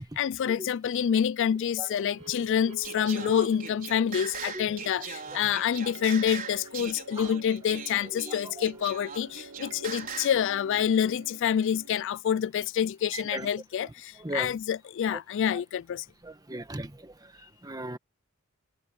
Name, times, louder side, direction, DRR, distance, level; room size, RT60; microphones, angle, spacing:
voice 1, 0.0-16.0, left 8 dB, 60° left, 0.3 m, -27 dB
sound 1, 1.7-12.0, right 2 dB, 75° right, 5.0 m, -46 dB
Singing, 2.8-10.4, right 6 dB, 40° right, 4.6 m, -40 dB
voice 2, 4.4-4.8 5.3-5.4 7.2-7.3 8.1-8.6 10.3-10.4 13.1-13.5 13.8-14.5 15.1-15.2 15.5-15.6 16.2-18.0, right 1 dB, 15° right, 1.4 m, -39 dB
head